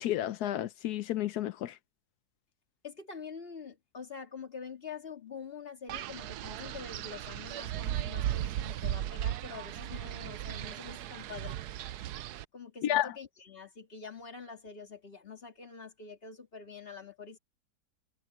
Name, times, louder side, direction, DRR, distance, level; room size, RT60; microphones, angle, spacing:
voice 1, 0.0-1.8 12.8-13.1, left 12 dB, 85° left, 1.2 m, -31 dB
voice 2, 2.8-11.6 12.5-17.4, left 5 dB, 35° left, 2.4 m, -46 dB
Wind, 5.9-12.5, right 12 dB, 80° right, 1.2 m, -36 dB
omnidirectional pair, 1.7 m